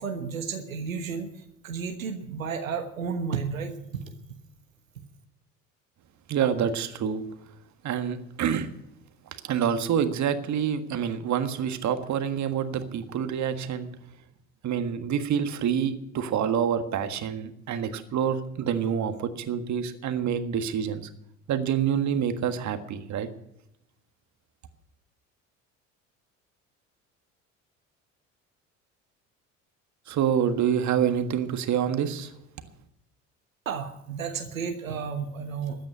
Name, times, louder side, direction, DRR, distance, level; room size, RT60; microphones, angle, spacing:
voice 1, 0.0-4.1 33.6-35.9, right 6 dB, 85° right, 5 dB, 1.3 m, -32 dB
voice 2, 6.3-7.2 7.8-8.7 9.4-13.9 14.6-21.1 21.5-23.3 30.1-32.3, right 8 dB, 45° right, 9 dB, 1.6 m, -27 dB
14.0 x 9.4 x 8.6 m, 0.83 s
figure-of-eight pair, 60°, 39 cm